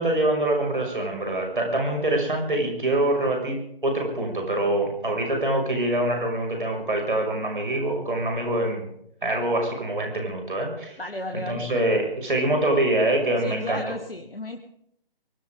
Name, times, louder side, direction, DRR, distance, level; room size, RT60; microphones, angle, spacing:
voice 1, 0.0-8.8 9.2-11.0 11.3-13.8, right 1 dB, 60° right, 2 dB, 6.2 m, -25 dB
voice 2, 11.0-11.7 13.4-14.6, left 2 dB, 75° left, 4 dB, 2.0 m, -33 dB
24.5 x 14.5 x 3.8 m, 0.72 s
figure-of-eight pair, 150°, 29 cm